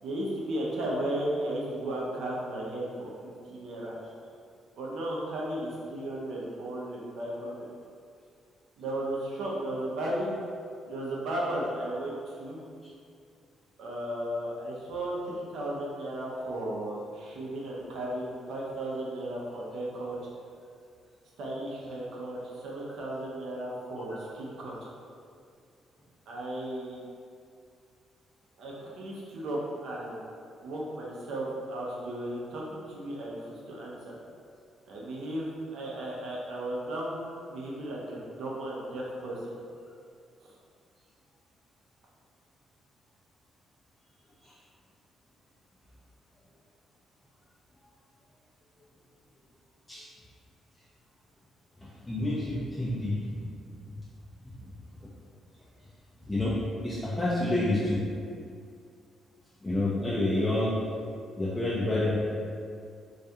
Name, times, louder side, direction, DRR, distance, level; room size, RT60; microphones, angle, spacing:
voice 1, 0.0-3.1 3.5-4.0 4.8-7.7 8.8-10.4 10.9-12.6 13.8-20.3 21.4-24.9 26.3-27.0 28.6-30.2 30.6-34.2 34.9-37.2 37.5-39.5 40.4-40.5 61.8-62.0, right 1 dB, 75° right, -4 dB, 0.5 m, -35 dB
voice 2, 51.8-53.4 53.7-53.8 54.4-54.7 55.0-55.1 56.2-58.0 59.6-60.8 61.4-62.2, left 1 dB, 15° left, -8 dB, 0.4 m, -29 dB
2.3 x 2.2 x 2.7 m, 2.3 s
cardioid pair, 90°, 0 cm